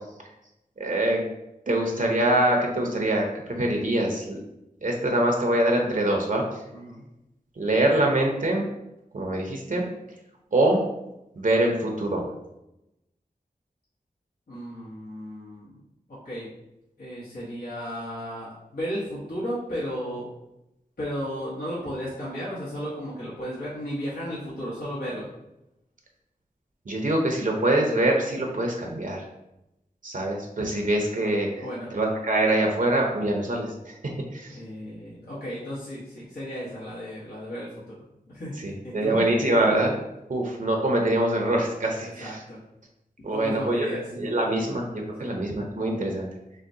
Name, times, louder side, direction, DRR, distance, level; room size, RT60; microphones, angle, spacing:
voice 1, 0.8-1.2 1.7-4.4 4.8-6.4 7.6-8.6 9.1-9.8 10.5-10.8 11.4-12.3 26.9-29.2 30.0-31.5 31.9-33.9 34.3-34.6 38.6-39.9 40.3-42.4 43.2-43.9 44.1-46.3, right 1 dB, 55° right, 1 dB, 0.7 m, -24 dB
voice 2, 6.7-7.0 14.5-15.7 16.1-16.5 17.0-20.3 21.0-25.3 31.6-31.9 34.5-37.9 38.3-38.6 38.8-39.2 42.0-42.6 43.3-44.0 45.2-45.3, equal, 85° left, -10 dB, 1.3 m, -34 dB
6.2 x 2.2 x 2.7 m, 0.90 s
wide cardioid pair, 80°, 16 cm